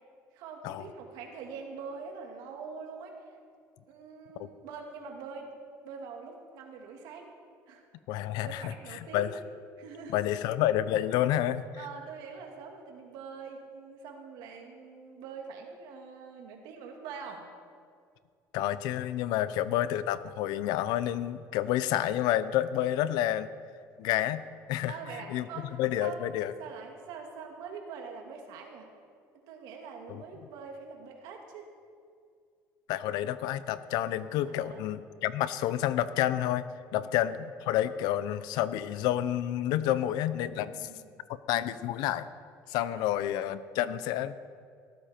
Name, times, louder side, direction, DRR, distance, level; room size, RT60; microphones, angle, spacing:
voice 1, 0.3-3.4 3.9-5.5 5.8-7.3 7.7-7.8 8.2-9.3 9.8-10.2 11.8-17.5 19.4-19.5 24.9-26.2 26.6-28.9 29.5-31.7 34.4-34.8 36.9-37.1 40.7-41.1 42.7-43.1, right 5 dB, 80° right, 2 dB, 2.5 m, -44 dB
voice 2, 8.1-9.3 10.1-11.7 18.5-23.5 24.0-24.9 25.3-25.5 25.8-26.5 30.1-30.2 32.9-36.6 36.9-40.9 41.5-42.3 42.7-44.4, left 12 dB, 80° left, 14 dB, 0.7 m, -29 dB
17.5 x 14.0 x 4.5 m, 2.2 s
cardioid pair, 110°, 7 cm